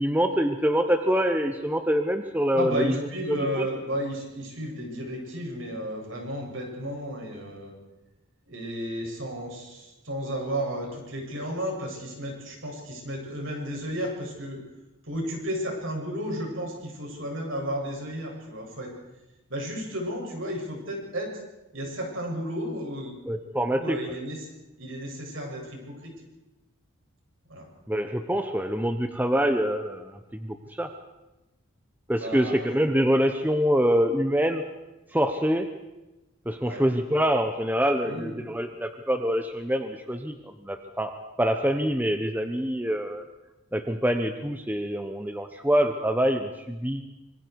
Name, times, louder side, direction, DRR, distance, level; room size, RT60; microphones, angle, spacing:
voice 1, 0.0-3.0 3.3-3.7 23.3-24.0 27.9-30.9 32.1-34.6 35.1-35.7 36.5-40.3 40.6-43.2 43.7-47.0, equal, 10° right, 6 dB, 1.0 m, -25 dB
voice 2, 2.5-7.7 8.5-14.6 15.0-18.9 19.5-21.3 21.7-23.2 23.8-24.5 24.8-26.1 27.5-27.7 32.1-32.8 36.6-36.8 38.0-38.4, equal, 65° right, 0 dB, 7.4 m, -33 dB
26.0 x 24.0 x 4.8 m, 1.0 s
head